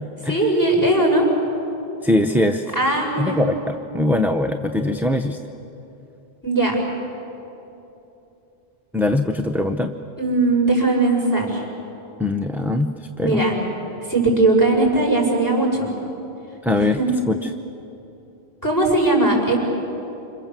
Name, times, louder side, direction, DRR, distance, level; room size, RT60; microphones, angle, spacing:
voice 1, 0.2-1.2 2.7-3.3 6.4-6.8 10.2-11.6 13.2-13.5 14.1-15.9 17.0-17.1 18.6-19.6, right 2 dB, 15° left, 0 dB, 6.6 m, -19 dB
voice 2, 2.0-2.7 3.2-5.4 8.9-9.9 12.2-12.9 13.2-13.4 16.6-17.0 17.3-17.5, left 2 dB, ahead, 4 dB, 0.7 m, -21 dB
28.5 x 26.5 x 7.6 m, 2.9 s
omnidirectional pair, 1.1 m